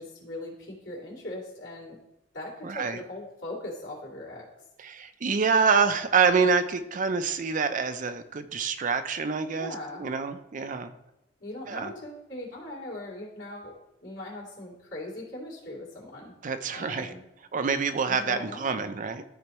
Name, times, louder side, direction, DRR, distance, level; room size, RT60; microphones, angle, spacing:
voice 1, 0.0-2.0 2.3-4.4 9.5-10.0 11.4-13.7 14.0-16.3 16.7-17.2 18.1-18.8, left 1 dB, 90° left, -5 dB, 2.7 m, -40 dB
voice 2, 2.6-3.0 4.8-10.9 11.7-11.9 16.4-17.1 17.5-19.2, right 5 dB, 45° right, 10 dB, 0.5 m, -26 dB
12.5 x 4.5 x 3.0 m, 0.90 s
head